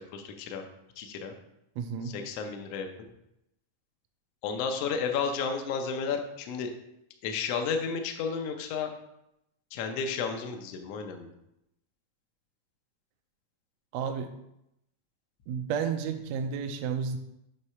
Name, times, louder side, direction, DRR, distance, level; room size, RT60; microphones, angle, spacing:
voice 1, 0.1-0.6 1.0-1.3 2.1-2.9 4.4-6.7 7.2-8.9 9.7-11.3, left 6 dB, 75° left, 4 dB, 1.4 m, -32 dB
voice 2, 1.8-2.1 13.9-14.3 15.5-17.2, right 6 dB, 80° right, 5 dB, 1.6 m, -31 dB
7.9 x 3.2 x 5.6 m, 0.83 s
omnidirectional pair, 3.7 m